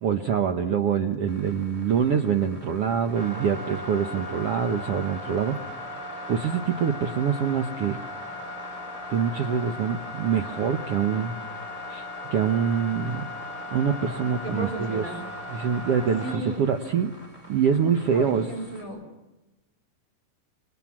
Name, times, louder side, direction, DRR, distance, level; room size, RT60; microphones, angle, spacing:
voice 1, 0.0-5.6 6.3-8.0 9.1-11.3 11.9-13.3 13.7-15.0 15.5-17.1 17.5-18.5, right 7 dB, 80° right, 6 dB, 1.3 m, -25 dB
sound 1, 1.3-18.8, left 1 dB, 10° right, 6.3 m, -38 dB
voice 2, 14.4-15.2 16.2-16.6 18.1-19.0, right 1 dB, 35° right, 4 dB, 5.8 m, -34 dB
27.5 x 25.5 x 7.4 m, 1.0 s
omnidirectional pair, 4.3 m